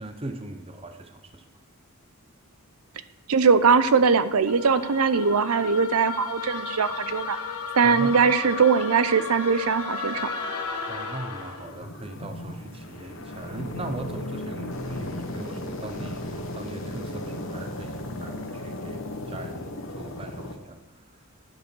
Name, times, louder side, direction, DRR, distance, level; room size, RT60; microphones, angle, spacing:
voice 1, 0.0-1.5 7.8-8.2 10.9-21.2, right 2 dB, 25° right, 7 dB, 0.7 m, -39 dB
voice 2, 3.3-7.4 7.7-10.3, right 5 dB, 85° right, 13 dB, 0.7 m, -21 dB
sound 1, 4.5-11.7, left 4 dB, 90° left, 1.5 m, -34 dB
sound 2, 11.3-20.6, left 1 dB, 60° left, 1.3 m, -35 dB
8.9 x 8.4 x 6.2 m, 1.1 s
head